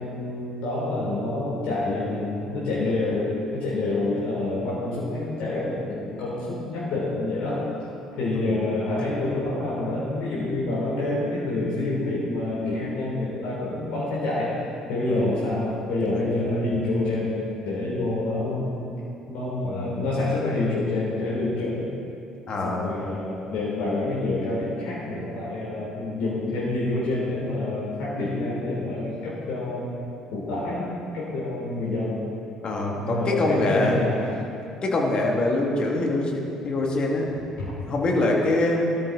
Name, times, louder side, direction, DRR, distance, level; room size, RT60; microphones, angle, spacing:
voice 1, 0.0-7.7 8.2-14.5 14.9-17.3 17.6-18.8 19.3-21.9 22.6-29.9 30.3-32.2 32.9-34.3 37.6-37.7, left 2 dB, 60° left, -7 dB, 4.0 m, -27 dB
voice 2, 19.6-20.0 22.5-22.9 28.7-28.9 32.6-34.0 34.8-37.3 37.8-39.0, left 2 dB, 40° left, -1 dB, 2.7 m, -24 dB
20.0 x 13.0 x 4.3 m, 2.7 s
figure-of-eight pair, 50°, 2 cm